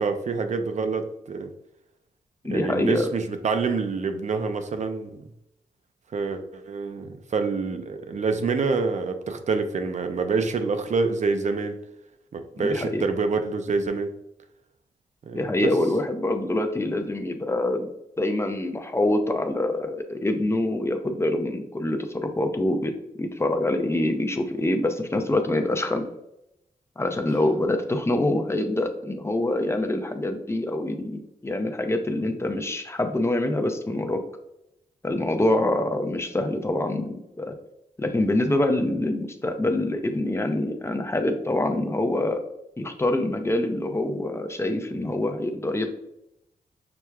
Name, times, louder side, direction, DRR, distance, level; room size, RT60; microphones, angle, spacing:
voice 1, 0.0-1.5 2.5-5.2 6.1-11.8 12.3-14.1 15.3-15.7, right 4 dB, 50° right, 7 dB, 0.5 m, -27 dB
voice 2, 2.4-3.1 12.6-13.1 15.3-17.9 18.2-22.9 23.2-26.0 27.0-34.2 35.0-37.5 38.0-42.4 42.8-45.9, left 1 dB, 15° left, 5 dB, 0.5 m, -25 dB
5.9 x 2.2 x 2.3 m, 0.83 s
cardioid pair, 65°, 15 cm